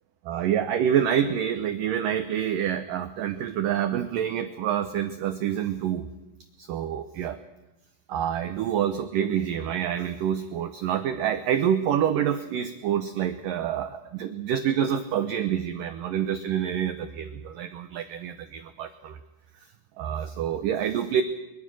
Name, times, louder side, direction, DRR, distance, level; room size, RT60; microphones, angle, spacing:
voice 1, 0.3-6.1 6.6-7.4 8.1-19.2 20.0-21.2, right 9 dB, 85° right, 9 dB, 1.9 m, -27 dB
22.5 x 22.5 x 6.3 m, 1.0 s
omnidirectional pair, 5.1 m